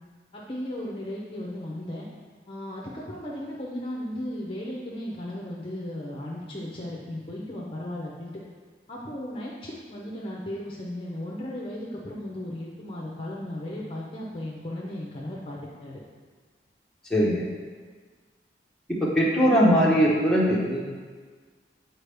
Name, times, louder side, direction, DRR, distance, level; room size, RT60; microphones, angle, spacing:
voice 1, 0.3-2.1 2.5-8.3 8.9-16.0, left 1 dB, 30° left, -4 dB, 0.7 m, -36 dB
voice 2, 17.1-17.5 18.9-20.8, equal, 5° left, -6 dB, 1.0 m, -21 dB
8.1 x 4.3 x 3.4 m, 1.5 s
head